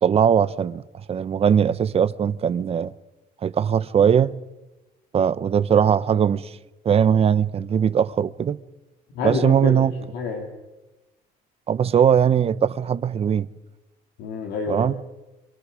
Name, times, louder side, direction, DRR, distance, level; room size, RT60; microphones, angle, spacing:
voice 1, 0.0-0.8 1.1-2.9 3.4-4.3 5.1-6.5 6.8-8.6 9.2-9.9 11.7-13.5 14.7-14.9, right 8 dB, 35° right, 0.7 m, -20 dB
voice 2, 9.1-10.5 14.2-14.9, left 5 dB, 85° left, 2.6 m, -28 dB
26.0 x 24.0 x 5.0 m
cardioid pair, 110°, 17 cm